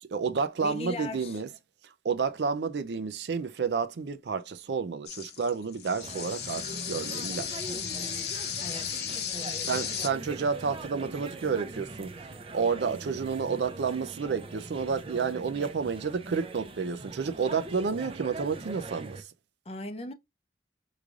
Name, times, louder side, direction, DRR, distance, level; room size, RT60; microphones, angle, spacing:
voice 1, 0.0-1.5 2.0-7.7 9.7-19.3, right 5 dB, 80° right, 0.5 m, -30 dB
voice 2, 0.6-1.4 8.6-9.0 9.3-9.7 19.7-20.1, left 1 dB, 35° left, 0.5 m, -39 dB
sound 1, 5.1-10.1, left 9 dB, 70° left, 0.8 m, -35 dB
sound 2, 6.0-19.2, right 2 dB, 30° right, 0.5 m, -42 dB
4.9 x 3.1 x 2.4 m
head